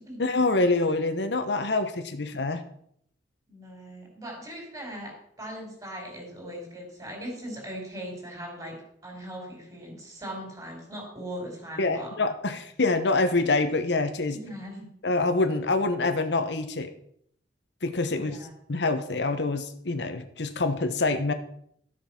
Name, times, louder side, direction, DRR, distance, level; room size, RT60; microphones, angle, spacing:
voice 1, 0.2-2.6 11.8-14.4 15.0-16.9 17.8-18.4 18.7-21.3, left 3 dB, 70° left, 9 dB, 1.0 m, -26 dB
voice 2, 3.5-8.8 9.0-12.1 14.3-14.9 18.1-18.5, equal, 20° right, 1 dB, 4.5 m, -39 dB
13.0 x 7.4 x 5.8 m, 0.67 s
head